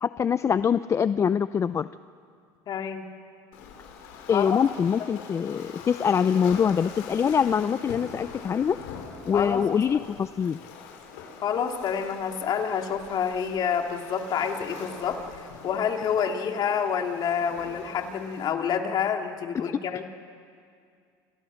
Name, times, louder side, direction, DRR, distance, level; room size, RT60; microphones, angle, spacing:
voice 1, 0.0-1.9 4.3-8.8 9.3-10.6, left 7 dB, 30° left, 14 dB, 0.6 m, -24 dB
voice 2, 2.7-3.0 4.3-4.6 9.3-9.6 11.4-20.0, left 7 dB, 50° left, 3 dB, 2.9 m, -28 dB
Waves surf, 3.5-18.5, left 6 dB, 85° left, 5.3 m, -43 dB
29.5 x 26.5 x 6.6 m, 2.3 s
supercardioid pair, 100°, 9 cm